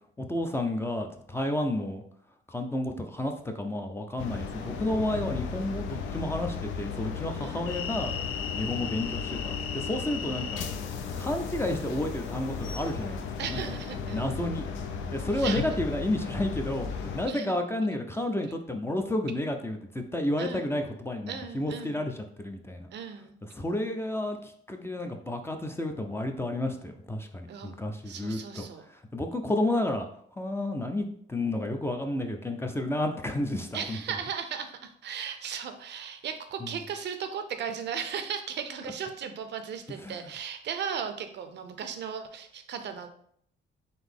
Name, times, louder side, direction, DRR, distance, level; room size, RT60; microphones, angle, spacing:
voice 1, 0.2-2.0 2.5-8.1 8.6-10.7 11.2-13.6 14.1-14.7 15.1-16.9 17.1-22.9 23.4-28.7 29.1-30.1 30.3-34.0 36.6-36.7 39.9-40.3, left 1 dB, 10° left, 4 dB, 0.5 m, -31 dB
sound 1, 4.2-17.3, left 6 dB, 75° left, 0.5 m, -35 dB
voice 2, 7.4-7.7 13.4-14.3 15.3-15.8 17.3-17.6 20.4-20.7 21.3-22.0 22.9-23.3 27.5-27.7 28.1-28.9 29.5-29.7 33.7-43.1, right 7 dB, 60° right, 8 dB, 0.5 m, -36 dB
3.9 x 2.6 x 3.5 m, 0.65 s
cardioid pair, 90°, 20 cm